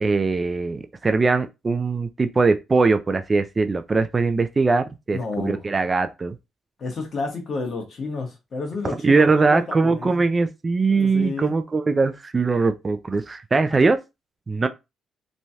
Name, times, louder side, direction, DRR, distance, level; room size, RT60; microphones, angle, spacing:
voice 1, 0.0-6.4 9.0-14.0 14.5-14.7, right 4 dB, 30° right, 0.3 m, -21 dB
voice 2, 5.1-5.7 6.8-10.2 10.9-11.5 13.7-13.8, left 3 dB, 50° left, 1.1 m, -31 dB
3.1 x 2.2 x 2.7 m
cardioid pair, 90°, 0 cm